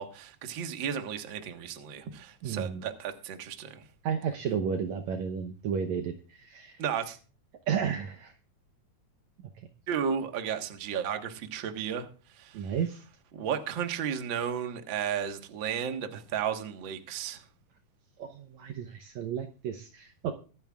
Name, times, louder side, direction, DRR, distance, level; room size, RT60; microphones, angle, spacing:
voice 1, 0.0-3.8 6.8-7.2 9.9-12.1 12.3-12.7 13.3-17.4, right 8 dB, 50° right, 1.7 m, -33 dB
voice 2, 2.4-2.8 4.0-6.8 7.7-8.3 12.5-13.0 18.2-20.3, right 7 dB, 70° right, 2.0 m, -32 dB
24.0 x 8.9 x 2.4 m
omnidirectional pair, 3.8 m